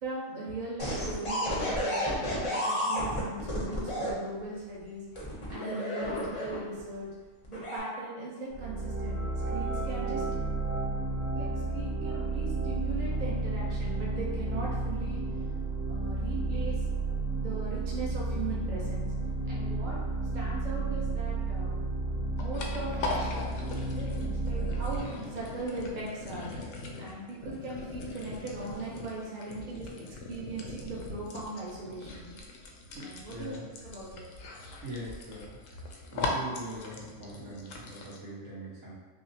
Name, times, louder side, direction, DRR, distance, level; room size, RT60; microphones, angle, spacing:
voice 1, 0.0-5.0 5.5-7.1 7.5-9.2 9.5-10.2 11.3-15.2 15.9-16.8 17.4-19.1 19.5-20.0 20.3-21.8 22.4-23.3 23.7-26.5 27.0-32.3 33.0-34.2, right 2 dB, 45° right, -5 dB, 0.7 m, -39 dB
sound 1, 0.8-4.1 5.1-6.8 7.4-7.8, equal, 35° left, 0.5 m, -31 dB
sound 2, 8.5-25.0, right 2 dB, 85° right, 1.8 m, -32 dB
sound 3, 21.9-38.2, left 2 dB, 70° left, 0.9 m, -40 dB
voice 2, 32.9-33.7 34.8-35.6 36.1-38.9, right 1 dB, 65° right, -8 dB, 1.6 m, -42 dB
5.7 x 2.0 x 2.7 m, 1.4 s
omnidirectional pair, 1.5 m